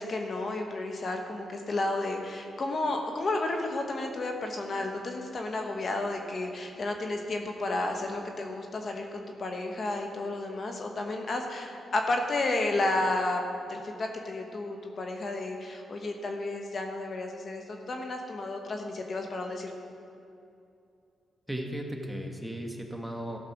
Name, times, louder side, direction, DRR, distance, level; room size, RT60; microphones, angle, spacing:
voice 1, 0.0-13.4 13.7-19.7, left 2 dB, 50° left, 3 dB, 1.2 m, -32 dB
voice 2, 21.5-23.4, right 1 dB, ahead, 2 dB, 1.6 m, -36 dB
14.0 x 6.5 x 6.0 m, 2.6 s
supercardioid pair, 60°, 0 cm